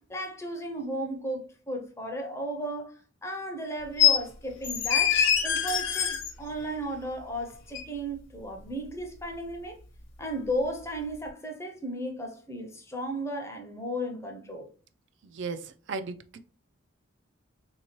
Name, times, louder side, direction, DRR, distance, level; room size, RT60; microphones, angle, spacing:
voice 1, 0.1-9.8 10.2-14.7, right 1 dB, 15° left, 0.5 m, -35 dB
sound 1, 4.0-4.2 4.6-6.3 7.7-7.8, left 8 dB, 65° left, 0.7 m, -23 dB
voice 2, 15.3-16.4, right 4 dB, 60° right, 0.4 m, -36 dB
3.5 x 2.8 x 2.9 m
head